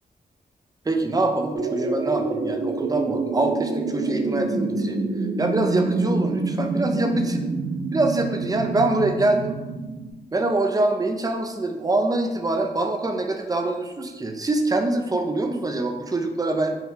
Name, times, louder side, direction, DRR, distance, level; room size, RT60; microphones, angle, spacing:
voice 1, 0.9-5.0 5.4-7.5 7.9-9.6 10.3-16.7, right 2 dB, 20° right, 4 dB, 0.4 m, -24 dB
sound 1, 1.5-10.1, right 3 dB, 80° right, 0.5 m, -27 dB
4.4 x 2.2 x 3.7 m, 1.1 s
wide cardioid pair, 100°, 17 cm